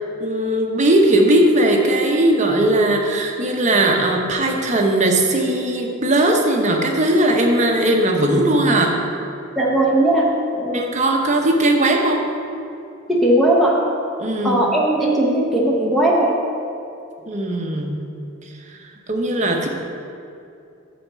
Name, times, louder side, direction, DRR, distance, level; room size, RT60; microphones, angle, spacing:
voice 1, 0.2-9.0 10.7-12.3 14.2-14.6 17.3-17.9 19.1-19.7, right 1 dB, 35° right, 2 dB, 0.9 m, -18 dB
voice 2, 9.6-10.3 10.5-10.8 13.1-13.8 14.4-16.3, right 1 dB, ahead, -4 dB, 0.9 m, -17 dB
8.9 x 4.2 x 7.3 m, 2.6 s
head